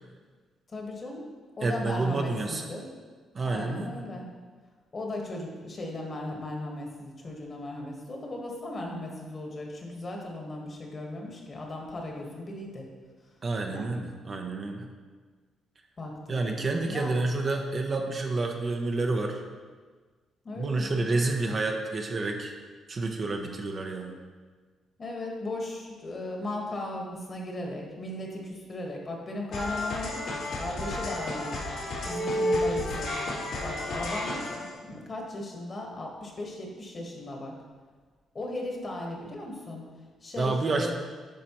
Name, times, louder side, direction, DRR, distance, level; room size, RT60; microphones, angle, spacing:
voice 1, 0.7-1.3 1.6-2.9 3.4-4.3 4.9-12.8 13.7-14.0 16.0-17.1 20.4-21.2 25.0-30.2 30.6-31.6 32.0-33.2 33.6-37.5 38.3-39.9 40.2-40.9, left 1 dB, 40° left, 0 dB, 1.4 m, -37 dB
voice 2, 1.6-2.6 3.3-4.1 13.4-14.9 16.3-19.4 20.6-22.5 22.9-24.1 40.4-40.9, right 3 dB, 40° right, 3 dB, 0.7 m, -29 dB
sound 1, 29.5-34.7, left 1 dB, 80° left, 2.0 m, -31 dB
8.5 x 5.0 x 3.0 m, 1.5 s
cardioid pair, 90°, 0 cm